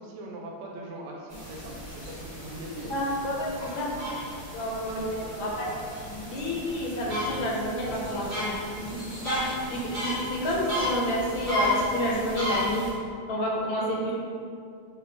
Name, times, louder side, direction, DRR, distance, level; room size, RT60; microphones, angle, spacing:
voice 1, 0.0-2.9 4.5-5.5 13.7-13.9, right 1 dB, 80° right, -1 dB, 1.5 m, -42 dB
sound 1, 1.3-12.9, left 1 dB, 15° right, 0.6 m, -34 dB
voice 2, 2.9-3.9 4.5-5.7 6.0-12.8 13.3-14.1, equal, 75° left, -3 dB, 1.3 m, -30 dB
4.7 x 2.2 x 3.3 m, 2.4 s
omnidirectional pair, 2.4 m